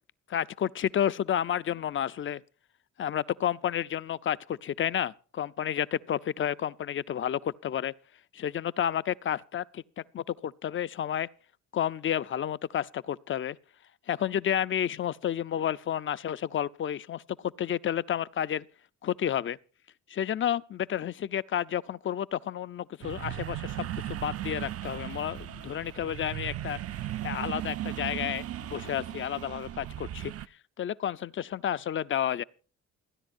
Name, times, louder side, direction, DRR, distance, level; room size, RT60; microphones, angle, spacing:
voice 1, 0.3-2.4 3.0-7.9 8.3-11.3 11.7-13.6 14.1-18.6 19.0-19.6 20.1-26.8 27.2-30.3 30.8-32.4, left 10 dB, 40° left, 0.5 m, -31 dB
sound 1, 23.0-30.5, right 12 dB, 55° right, 0.5 m, -37 dB
28.5 x 10.5 x 2.5 m
cardioid pair, 90°, 30 cm